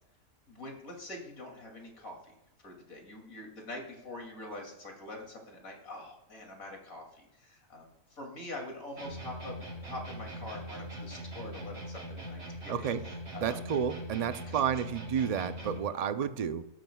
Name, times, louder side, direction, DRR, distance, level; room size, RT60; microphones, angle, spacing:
voice 1, 0.5-2.4 2.6-9.5 9.8-12.8 13.3-13.7 14.5-14.6, left 1 dB, 85° left, 2 dB, 3.1 m, -44 dB
sound 1, 9.0-16.0, right 1 dB, 75° right, 5.2 m, -42 dB
voice 2, 12.7-13.1 13.4-16.6, right 8 dB, 55° right, 11 dB, 0.4 m, -31 dB
17.5 x 13.5 x 2.3 m, 0.93 s
omnidirectional pair, 1.4 m